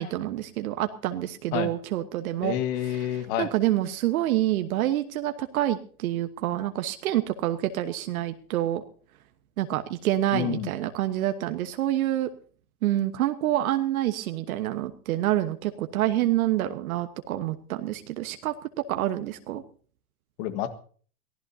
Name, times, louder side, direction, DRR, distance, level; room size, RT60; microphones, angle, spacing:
voice 1, 0.0-2.5 2.8-8.8 9.6-12.3 12.8-18.5 18.9-19.6, right 13 dB, 70° right, 8 dB, 1.3 m, -27 dB
voice 2, 2.4-3.5 10.3-10.7 20.4-20.8, left 11 dB, 45° left, 10 dB, 1.7 m, -29 dB
23.0 x 16.0 x 2.8 m, 0.43 s
supercardioid pair, 140°, 44 cm